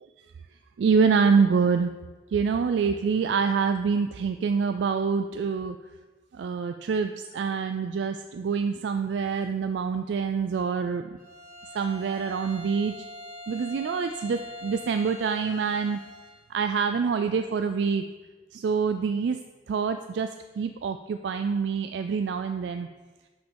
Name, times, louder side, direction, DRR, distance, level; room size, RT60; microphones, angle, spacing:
voice 1, 0.8-1.9 2.3-5.8 6.3-11.1 11.7-13.1 13.5-16.0 16.5-18.0 18.5-19.4 19.7-22.9, right 5 dB, 80° right, 8 dB, 0.3 m, -26 dB
Bowed string instrument, 11.2-16.4, left 1 dB, 45° right, 1.9 m, -43 dB
6.1 x 5.1 x 6.4 m, 1.3 s
head